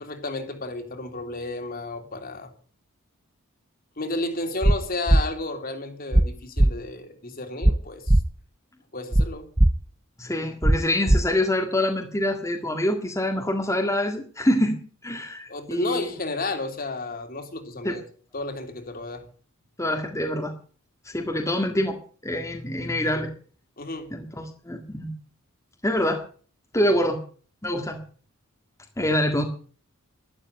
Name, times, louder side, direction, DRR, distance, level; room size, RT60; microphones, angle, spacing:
voice 1, 0.0-2.5 4.0-8.2 8.9-9.5 15.5-18.0 18.3-19.3 23.8-24.1, left 2 dB, 45° left, 5 dB, 2.9 m, -32 dB
sound 1, 4.6-4.8 5.1-5.2 6.1-6.3 6.6-6.7 7.6-7.8 8.1-8.2 9.1-9.3 9.6-9.7 10.6-10.8 11.1-11.2, right 1 dB, 15° right, 0.6 m, -16 dB
voice 2, 10.2-16.1 17.8-18.0 19.8-20.5 21.1-22.0 22.2-23.3 24.1-25.1 25.8-26.2 26.7-27.2 27.6-28.0 29.0-29.4, left 1 dB, 15° left, 2 dB, 1.7 m, -25 dB
12.5 x 12.0 x 7.9 m, 0.43 s
head